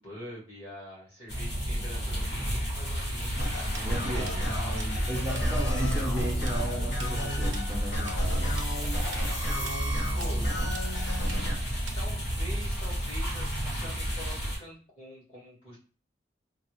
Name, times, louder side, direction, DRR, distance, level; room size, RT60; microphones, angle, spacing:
voice 1, 0.0-5.3 7.8-8.0 9.2-10.5 11.0-11.3 12.0-15.8, equal, 30° left, -7 dB, 1.8 m, -45 dB
sound 1, 1.3-14.6, equal, 60° left, 1.3 m, -31 dB
sound 2, 3.3-11.5, equal, 80° left, 1.1 m, -33 dB
Tools, 3.7-5.5 5.7-6.0 6.3-12.4, right 5 dB, 80° right, 0.5 m, -45 dB
voice 2, 3.8-4.3 5.1-8.6, equal, 15° right, -2 dB, 0.5 m, -35 dB
4.0 x 2.0 x 2.9 m, 0.38 s
head